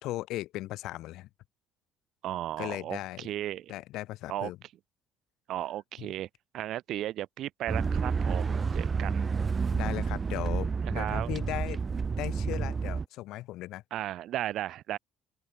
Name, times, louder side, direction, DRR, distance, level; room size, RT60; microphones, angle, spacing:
voice 1, 0.0-1.3 2.6-3.3 3.7-4.6 9.7-11.8 12.2-13.8, left 16 dB, 60° left, 4.5 m, -37 dB
voice 2, 2.2-3.7 4.3-4.5 5.5-6.3 6.5-9.3 10.8-11.3 13.9-15.0, right 13 dB, 50° right, 2.0 m, -35 dB
sound 1, 7.7-13.1, right 5 dB, 20° right, 0.8 m, -30 dB
open air
cardioid pair, 170°, 0 cm